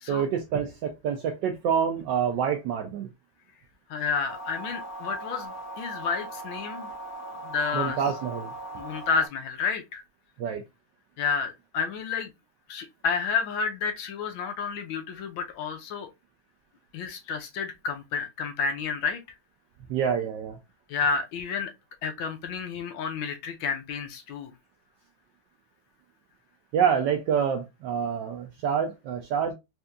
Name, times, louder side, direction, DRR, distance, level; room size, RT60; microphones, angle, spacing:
voice 1, 0.1-3.1 7.7-8.5 10.4-10.6 19.9-20.6 26.7-29.5, right 7 dB, 75° right, 1.0 m, -27 dB
voice 2, 3.9-6.9 7.4-8.0 8.8-10.0 11.2-12.3 12.7-16.1 16.9-19.2 20.9-21.7 22.0-24.5, left 5 dB, 75° left, 1.3 m, -30 dB
sound 1, 4.3-9.3, right 1 dB, 45° left, 1.5 m, -39 dB
4.4 x 2.6 x 2.3 m
omnidirectional pair, 2.4 m